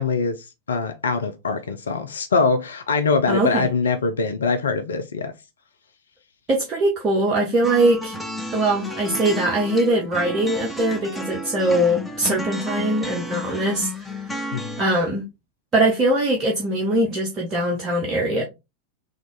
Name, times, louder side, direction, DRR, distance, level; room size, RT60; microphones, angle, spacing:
voice 1, 0.0-5.3 14.5-14.7, left 4 dB, 70° left, 0.4 m, -23 dB
voice 2, 3.3-3.7 6.5-8.1 8.5-14.2 14.8-15.3 15.7-18.4, right 1 dB, 25° right, 0.8 m, -21 dB
sound 1, 7.6-14.8, equal, 5° left, 0.6 m, -32 dB
3.5 x 2.5 x 3.7 m
figure-of-eight pair, 90°, 0 cm